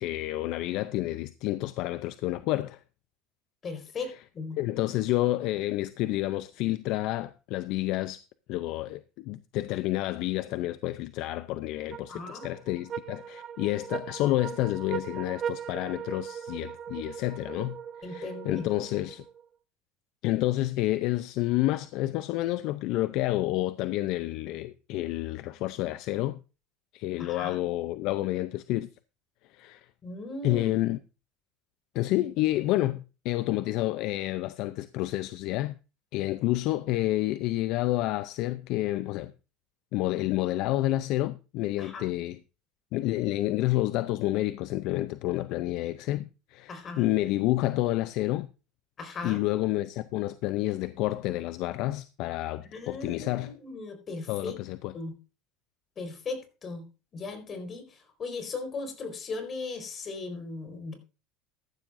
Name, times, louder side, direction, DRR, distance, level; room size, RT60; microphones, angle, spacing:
voice 1, 0.0-2.8 4.6-8.2 8.5-19.2 20.2-26.4 26.9-28.9 29.5-29.9 30.4-31.0 31.9-35.8 36.1-39.3 39.9-42.4 42.9-48.5 49.2-53.5 54.3-54.9, left 16 dB, 65° left, 0.5 m, -29 dB
voice 2, 3.6-4.6 12.1-12.5 18.0-18.7 27.2-27.6 30.0-30.7 41.8-42.1 46.7-47.1 49.0-49.4 52.6-54.6 54.9-55.1 56.0-56.8 57.1-60.9, left 3 dB, 35° left, 4.4 m, -38 dB
sound 1, 11.9-19.5, right 8 dB, 35° right, 1.1 m, -39 dB
14.5 x 11.5 x 2.6 m
supercardioid pair, 120°, 0 cm